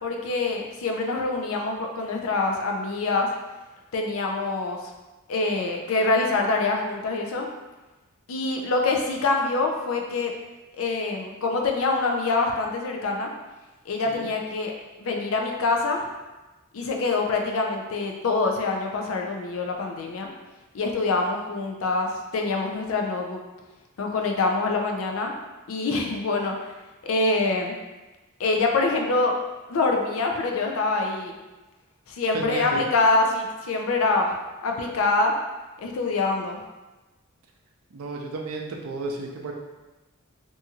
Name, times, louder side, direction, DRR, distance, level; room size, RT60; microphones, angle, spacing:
voice 1, 0.0-3.3 3.9-4.8 5.3-7.5 8.3-10.3 10.8-13.3 13.9-14.7 15.0-16.0 16.7-20.3 20.7-23.4 24.0-25.3 25.7-26.5 27.0-27.7 28.4-29.3 29.7-31.3 32.1-34.4 34.6-35.3 35.8-36.6, left 3 dB, 70° left, 2 dB, 0.4 m, -25 dB
voice 2, 32.3-32.8 37.9-39.5, right 3 dB, 75° right, 1 dB, 0.5 m, -32 dB
2.6 x 2.3 x 2.8 m, 1.1 s
head